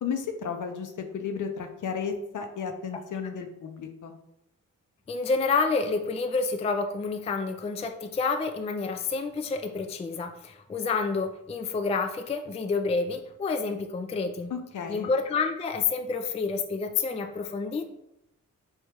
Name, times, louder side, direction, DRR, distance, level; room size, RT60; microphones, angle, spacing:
voice 1, 0.0-4.1 14.5-15.1, left 6 dB, 60° left, 6 dB, 0.6 m, -33 dB
voice 2, 5.1-14.5 14.9-17.8, left 4 dB, 20° left, 6 dB, 0.3 m, -29 dB
3.5 x 2.7 x 3.0 m, 0.84 s
supercardioid pair, 45°, 35 cm